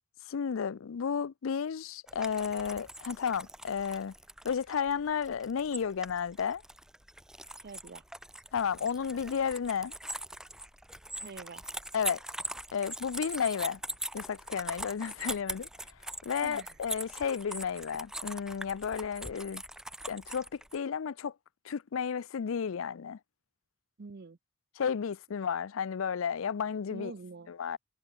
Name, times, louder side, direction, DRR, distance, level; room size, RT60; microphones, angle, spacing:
voice 1, 0.3-4.1 4.4-6.6 8.5-9.9 11.9-12.2 12.7-13.8 14.1-15.7 16.2-19.6 20.1-21.3 21.6-23.2 24.8-27.1 27.5-27.8, left 7 dB, 85° left, 0.5 m, -32 dB
sound 1, 2.1-20.8, right 1 dB, 5° right, 0.5 m, -42 dB
voice 2, 7.6-8.0 11.2-11.6 16.4-16.8 24.0-24.4 26.9-27.5, right 4 dB, 50° right, 0.6 m, -45 dB
head